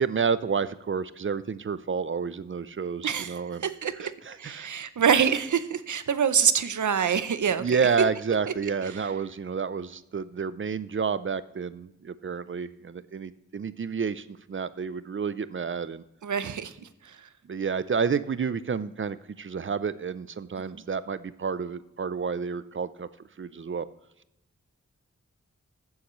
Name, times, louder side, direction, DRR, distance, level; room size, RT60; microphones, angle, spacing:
voice 1, 0.0-3.6 4.3-4.7 7.6-16.0 17.4-23.1 23.4-23.9, right 6 dB, 45° right, 15 dB, 0.5 m, -30 dB
voice 2, 3.0-4.1 4.4-7.9 8.5-9.1 16.2-17.3 20.6-20.8, right 7 dB, 90° right, 13 dB, 0.7 m, -26 dB
15.0 x 7.2 x 3.1 m, 0.89 s
wide cardioid pair, 95°, 29 cm